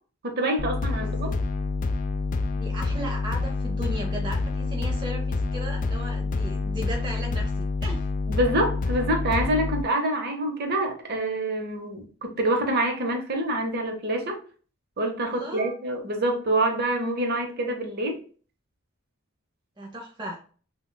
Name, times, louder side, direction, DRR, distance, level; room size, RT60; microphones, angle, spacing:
voice 1, 0.2-1.3 8.3-14.4 15.0-18.2, right 1 dB, 50° right, 0.8 m, -26 dB
sound 1, 0.6-9.8, left 3 dB, 40° left, 0.3 m, -27 dB
voice 2, 2.5-8.1 15.3-15.7 19.8-20.4, right 1 dB, 20° right, 0.6 m, -36 dB
5.9 x 2.3 x 2.2 m
head